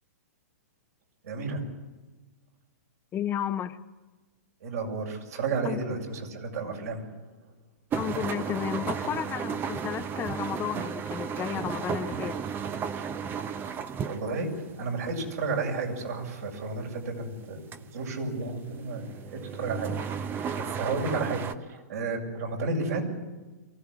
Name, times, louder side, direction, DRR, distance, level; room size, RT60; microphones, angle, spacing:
voice 1, 1.2-1.6 4.6-7.1 13.8-19.9 20.6-23.0, right 3 dB, 65° right, 7.3 m, -32 dB
voice 2, 3.1-3.8 5.6-5.8 7.9-12.4, left 10 dB, 25° left, 1.0 m, -32 dB
sound 1, 7.9-14.9 15.1-17.8 18.1-21.5, right 7 dB, 25° right, 1.0 m, -34 dB
23.5 x 16.5 x 10.0 m
hypercardioid pair, 125°, 9 cm